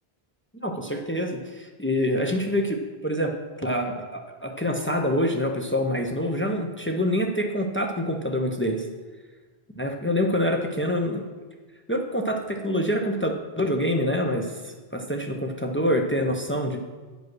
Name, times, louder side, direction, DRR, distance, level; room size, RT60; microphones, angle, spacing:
voice 1, 0.6-8.9 9.8-11.3 11.9-16.8, equal, 15° left, 3 dB, 0.7 m, -26 dB
9.5 x 5.2 x 6.1 m, 1.3 s
omnidirectional pair, 1.0 m